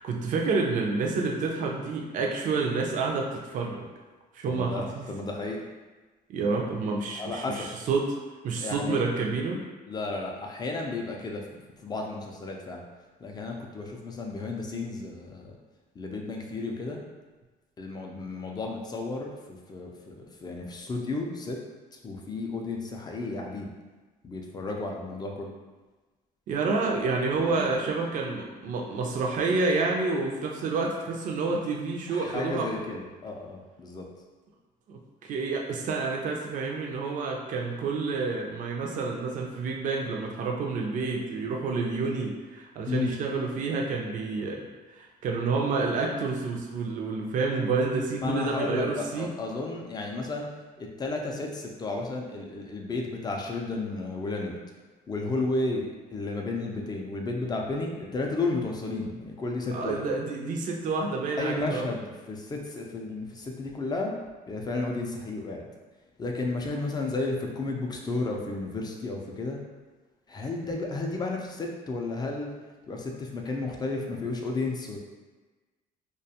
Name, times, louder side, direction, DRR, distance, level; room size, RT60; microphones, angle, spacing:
voice 1, 0.0-3.9 4.3-5.1 6.3-8.0 8.4-9.6 26.5-32.7 34.9-44.7 44.9-49.3 59.7-61.9, right 4 dB, 50° right, 0 dB, 0.4 m, -29 dB
voice 2, 4.4-5.6 7.2-7.7 8.6-9.0 9.9-12.8 13.2-15.5 16.0-17.0 17.8-21.6 21.9-23.7 24.2-25.5 27.3-27.8 32.1-34.1 42.9-43.1 48.2-50.5 50.8-54.6 55.1-60.0 61.4-64.1 64.5-65.7 66.2-69.6 70.3-72.5 72.9-75.0, left 3 dB, 25° left, 1 dB, 0.4 m, -33 dB
2.3 x 2.2 x 2.7 m, 1.2 s
cardioid pair, 110°, 17 cm